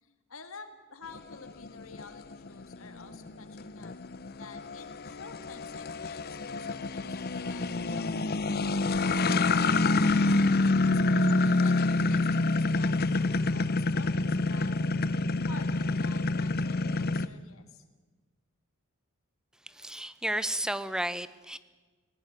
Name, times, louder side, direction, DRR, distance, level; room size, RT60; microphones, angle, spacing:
voice 1, 0.0-3.9 4.4-9.1 10.0-10.5 10.9-14.7 15.2-17.8, left 4 dB, 75° left, 9 dB, 2.0 m, -49 dB
sound 1, 1.1-17.3, left 3 dB, 50° left, 0.7 m, -27 dB
voice 2, 19.7-21.6, right 1 dB, 5° right, 14 dB, 0.9 m, -32 dB
18.5 x 18.5 x 9.9 m, 1.3 s
head